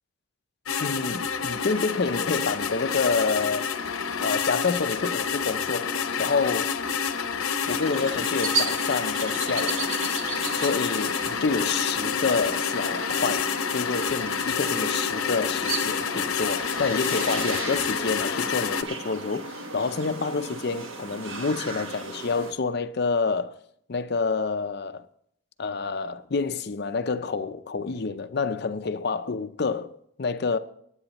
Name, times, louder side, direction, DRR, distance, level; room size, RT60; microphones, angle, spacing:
sound 1, 0.7-18.8, left 6 dB, 90° left, 0.7 m, -28 dB
voice 1, 0.8-3.7 4.2-6.7 7.7-9.9 10.5-13.5 13.7-23.5 23.9-25.1 25.6-30.6, left 4 dB, 50° left, 0.5 m, -28 dB
sound 2, 7.7-22.5, right 3 dB, 70° right, 1.2 m, -35 dB
23.5 x 9.5 x 3.0 m
head